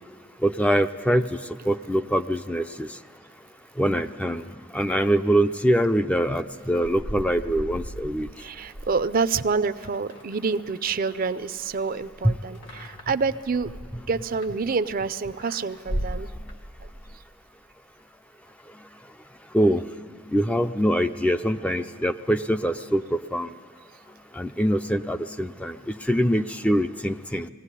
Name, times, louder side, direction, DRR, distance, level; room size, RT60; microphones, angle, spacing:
voice 1, 0.4-1.4 1.7-2.9 3.8-4.4 4.7-8.3 12.2-12.4 19.5-19.8 20.3-23.5 24.3-27.5, equal, 5° left, 8 dB, 0.4 m, -23 dB
sound 1, 6.7-11.0 11.3-15.0 15.4-17.2, equal, 70° left, 2.1 m, -37 dB
voice 2, 8.4-13.7 14.1-16.3, right 4 dB, 45° right, 13 dB, 0.5 m, -27 dB
20.5 x 16.0 x 9.8 m, 2.4 s
head